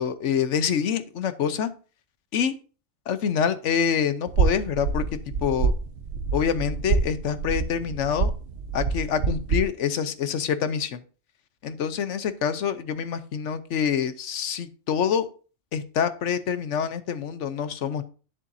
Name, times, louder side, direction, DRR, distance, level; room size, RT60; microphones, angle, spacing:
voice 1, 0.0-1.7 2.3-2.5 3.1-5.0 5.4-5.7 6.3-8.3 8.7-11.0 11.6-15.3 15.7-18.0, left 7 dB, 85° left, 12 dB, 1.1 m, -26 dB
sound 1, 4.3-9.6, right 5 dB, 75° right, 1.1 m, -26 dB
10.0 x 7.3 x 2.7 m, 0.37 s
omnidirectional pair, 1.2 m